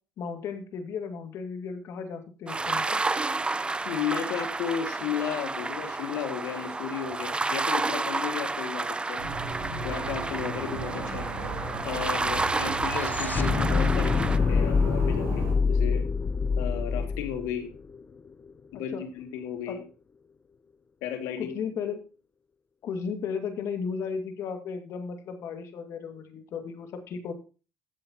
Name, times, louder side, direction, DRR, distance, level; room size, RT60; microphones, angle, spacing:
voice 1, 0.2-3.0 18.9-19.0 19.7-19.8 21.4-22.0 22.8-27.3, left 6 dB, 60° left, 7 dB, 2.1 m, -35 dB
sound 1, 2.5-14.4, right 3 dB, 20° right, 0.7 m, -31 dB
voice 2, 3.9-9.2 9.8-11.3 11.8-16.1 16.6-17.7 18.7-19.8 21.0-21.6, left 8 dB, 80° left, 6 dB, 2.0 m, -34 dB
sound 2, 9.2-15.5, right 3 dB, 80° right, 5.0 m, -36 dB
sound 3, 10.0-10.1 10.3-18.5, left 5 dB, 35° left, 0.7 m, -27 dB
14.0 x 8.0 x 2.9 m, 0.34 s
supercardioid pair, 70°, 5 cm